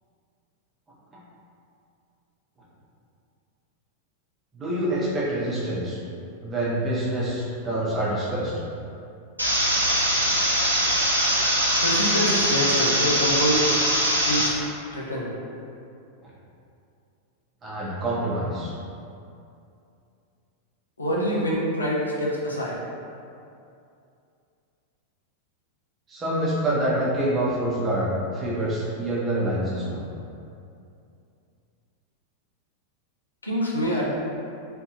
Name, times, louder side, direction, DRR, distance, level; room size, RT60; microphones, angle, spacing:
voice 1, 4.5-6.0 6.4-8.5 17.6-18.7 26.1-30.0, right 1 dB, 20° right, -7 dB, 0.9 m, -26 dB
sound 1, 9.4-14.5, equal, 85° right, 0.5 m, -22 dB
voice 2, 11.7-13.7 14.2-14.5 14.9-15.3 21.0-22.8 33.4-34.1, equal, 80° left, -5 dB, 0.6 m, -25 dB
3.5 x 2.6 x 2.8 m, 2.5 s
figure-of-eight pair, 90°, 0 cm